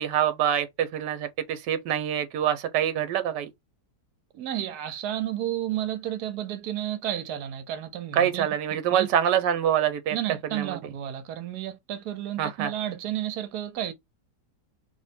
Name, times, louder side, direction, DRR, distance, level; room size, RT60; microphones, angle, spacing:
voice 1, 0.0-3.5 8.1-10.2 10.5-10.8 12.4-12.7, right 9 dB, 90° right, 1.2 m, -25 dB
voice 2, 4.3-8.5 8.9-9.1 10.1-13.9, right 11 dB, 70° right, 1.2 m, -32 dB
3.1 x 2.1 x 4.1 m
omnidirectional pair, 1.8 m